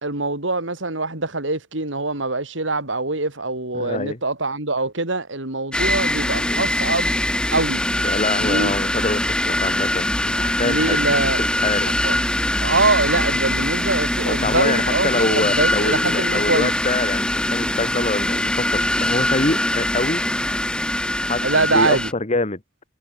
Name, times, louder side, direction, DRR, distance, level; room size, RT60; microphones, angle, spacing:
voice 1, 0.0-7.2 7.5-7.8 8.4-8.7 10.6-11.4 12.0-12.2 12.6-16.7 21.4-22.1, right 3 dB, 85° right, 4.6 m, -23 dB
voice 2, 3.7-4.2 6.4-6.6 8.0-11.0 11.4-11.9 14.3-20.2 21.3-22.6, left 2 dB, 35° left, 1.7 m, -25 dB
sound 1, 5.7-22.1, left 1 dB, 5° left, 1.4 m, -22 dB
head